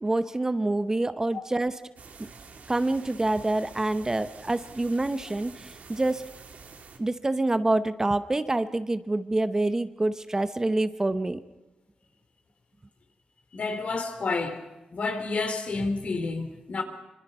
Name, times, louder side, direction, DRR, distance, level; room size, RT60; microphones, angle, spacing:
voice 1, 0.0-1.7 2.7-6.2 7.0-11.4, right 2 dB, 20° right, 0.9 m, -26 dB
sound 1, 2.0-7.0, right 5 dB, 75° right, 2.8 m, -48 dB
voice 2, 13.5-14.6 14.9-16.8, left 3 dB, 55° left, 3.7 m, -29 dB
25.5 x 25.0 x 5.6 m
wide cardioid pair, 100°, 3 cm